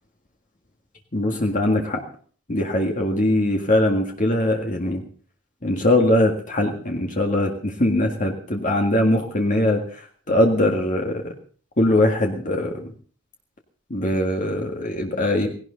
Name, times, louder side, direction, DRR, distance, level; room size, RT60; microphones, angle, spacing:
voice 1, 1.1-2.0 2.5-5.0 5.6-9.8 10.3-11.2 11.8-12.9 13.9-15.5, left 1 dB, 40° left, 2 dB, 1.8 m, -21 dB
18.5 x 17.5 x 3.9 m, 0.42 s
head